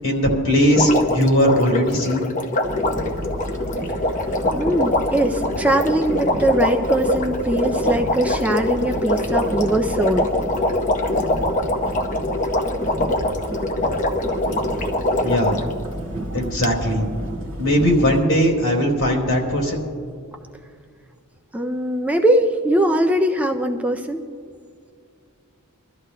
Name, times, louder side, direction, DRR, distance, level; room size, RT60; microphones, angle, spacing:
voice 1, 0.0-2.3 15.2-15.6 16.3-17.0 17.6-19.8, equal, 60° left, -2 dB, 3.5 m, -19 dB
Water, 0.7-15.7 16.6-16.7, left 1 dB, 35° left, 0.8 m, -23 dB
sound 1, 2.6-18.2, right 1 dB, 65° right, 1.9 m, -31 dB
voice 2, 4.5-10.3 21.5-24.2, right 1 dB, 5° right, 4 dB, 0.4 m, -21 dB
26.0 x 13.0 x 2.2 m, 2.2 s
head